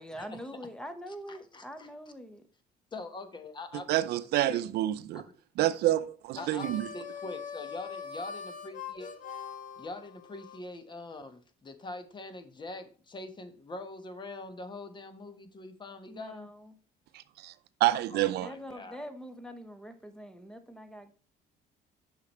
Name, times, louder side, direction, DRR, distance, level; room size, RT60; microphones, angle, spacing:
voice 1, 0.0-2.4 16.1-16.7 18.4-21.1, equal, 5° left, 1.1 m, -44 dB
voice 2, 1.3-1.9 2.9-3.9 4.4-4.6 5.1-5.2 6.4-9.1 9.8-16.5 17.9-19.0, left 2 dB, 25° left, 1.2 m, -43 dB
voice 3, 3.9-5.2 5.6-6.9 17.1-17.5 17.8-18.5, right 15 dB, 75° right, 0.5 m, -28 dB
Harmonica, 6.3-10.6, left 6 dB, 50° left, 1.2 m, -42 dB
8.4 x 5.9 x 3.1 m
cardioid pair, 110°, 17 cm